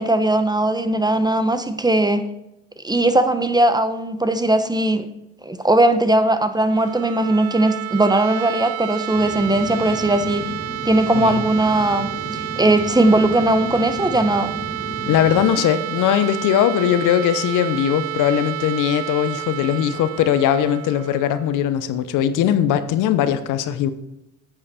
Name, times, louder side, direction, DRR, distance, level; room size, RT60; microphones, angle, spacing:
voice 1, 0.0-2.2 2.8-5.1 5.4-10.5 10.8-14.5, right 1 dB, 10° right, 10 dB, 1.0 m, -19 dB
sound 1, 6.6-22.4, right 14 dB, 45° right, 0.5 m, -30 dB
sound 2, 9.1-15.5, left 1 dB, 5° left, 3.5 m, -33 dB
voice 2, 11.1-11.4 15.1-23.9, left 10 dB, 60° left, 12 dB, 0.9 m, -20 dB
9.2 x 8.5 x 4.3 m, 0.88 s
hypercardioid pair, 65°, 35 cm